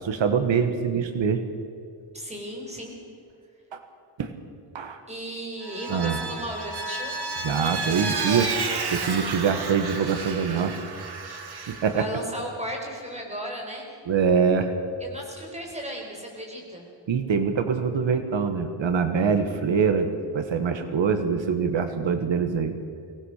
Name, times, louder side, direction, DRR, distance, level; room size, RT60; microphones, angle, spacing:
voice 1, 0.0-1.4 3.7-3.8 4.2-4.3 4.7-5.0 5.9-6.2 7.4-8.6 8.9-10.7 11.1-11.3 11.7-12.1 14.1-14.7 17.1-22.8, right 6 dB, 85° right, 8 dB, 1.7 m, -24 dB
voice 2, 2.1-2.9 5.1-7.2 11.6-13.9 15.0-16.9, equal, 15° right, 0 dB, 6.1 m, -35 dB
Vehicle, 5.6-12.0, right 4 dB, 60° right, 2.6 m, -31 dB
24.5 x 19.0 x 6.7 m, 2.5 s
wide cardioid pair, 130°, 44 cm